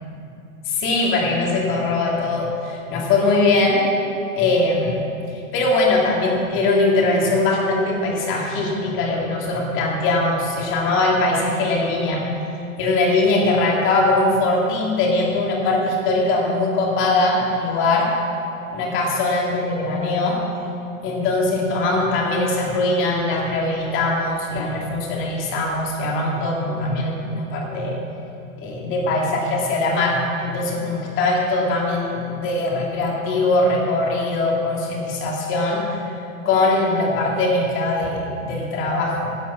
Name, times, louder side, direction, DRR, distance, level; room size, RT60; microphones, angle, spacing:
voice 1, 0.6-3.9 4.4-5.1 5.5-12.2 12.8-18.1 18.7-20.4 21.0-28.0 28.6-36.1 36.4-39.3, left 2 dB, 30° left, -2 dB, 2.6 m, -21 dB
11.5 x 7.1 x 7.4 m, 2.7 s
hypercardioid pair, 125°, 42 cm